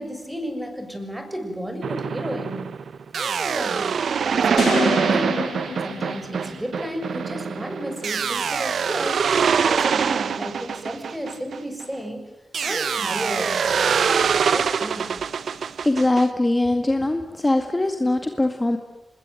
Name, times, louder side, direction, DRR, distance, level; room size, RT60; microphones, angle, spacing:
voice 1, 0.0-2.7 3.1-5.5 5.8-12.2 12.6-15.2, equal, 10° right, 6 dB, 6.7 m, -32 dB
sound 1, 1.8-11.9 12.5-16.2, right 6 dB, 80° right, 0.9 m, -24 dB
sound 2, 4.6-6.9, left 6 dB, 85° left, 2.0 m, -29 dB
voice 2, 15.8-18.8, left 2 dB, 20° left, 6 dB, 2.1 m, -21 dB
26.0 x 21.0 x 9.1 m, 1.0 s
cardioid pair, 75°, 0 cm